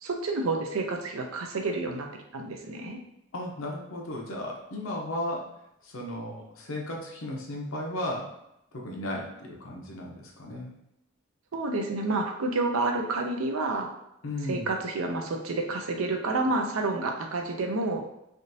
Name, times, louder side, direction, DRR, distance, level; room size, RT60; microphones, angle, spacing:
voice 1, 0.0-2.1 2.3-3.0 11.5-13.9 14.5-18.0, right 3 dB, 80° right, 3 dB, 0.5 m, -29 dB
voice 2, 3.3-5.4 5.8-8.2 8.8-10.7 14.2-14.7, left 1 dB, 75° left, -1 dB, 0.8 m, -35 dB
3.5 x 2.5 x 2.7 m, 0.83 s
head